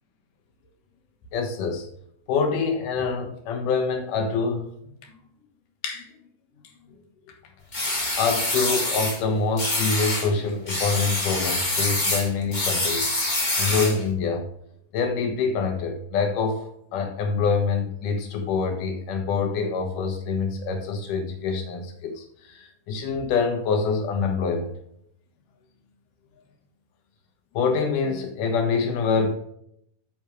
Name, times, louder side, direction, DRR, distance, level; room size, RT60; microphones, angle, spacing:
voice 1, 1.3-1.8 2.3-4.7 5.8-6.1 8.2-13.1 13.6-14.4 14.9-16.7 16.9-22.2 22.9-24.7 27.5-29.4, left 5 dB, 85° left, 5 dB, 2.9 m, -25 dB
sound 1, 7.7-9.2 9.6-10.3 10.7-14.0, left 2 dB, 25° left, 0.9 m, -26 dB
8.6 x 6.3 x 3.1 m, 0.71 s
omnidirectional pair, 3.6 m